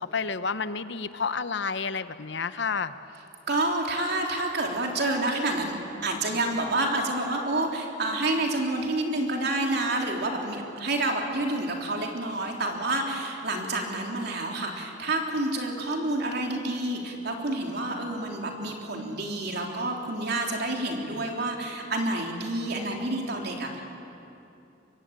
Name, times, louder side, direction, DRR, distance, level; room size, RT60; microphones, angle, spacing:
voice 1, 0.0-2.9, left 5 dB, 65° left, 12 dB, 0.9 m, -30 dB
voice 2, 3.5-5.7 6.0-23.8, right 2 dB, 55° right, 1 dB, 3.5 m, -28 dB
24.0 x 23.5 x 8.9 m, 2.8 s
head